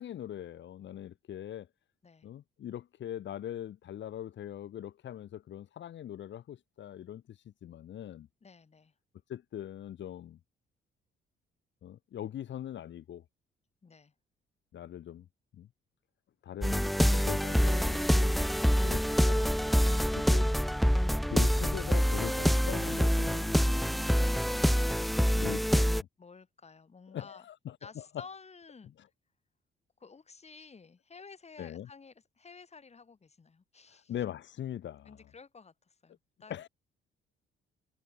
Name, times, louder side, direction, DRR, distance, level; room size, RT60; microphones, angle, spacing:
voice 1, 0.0-1.7 2.2-8.3 9.3-10.4 11.8-13.2 14.7-15.3 15.6-15.7 16.4-18.3 18.8-19.5 20.2-20.5 21.2-23.9 25.3-26.1 27.1-28.1 31.6-31.9 34.1-35.2 36.5-36.7, left 11 dB, 65° left, 2.5 m, -41 dB
voice 2, 8.4-8.9 13.8-14.1 26.2-27.4 27.8-28.9 30.0-34.1 35.0-36.7, left 5 dB, 35° left, 5.0 m, -53 dB
sound 1, 16.6-26.0, equal, ahead, 0.4 m, -26 dB
cardioid pair, 90°, 20 cm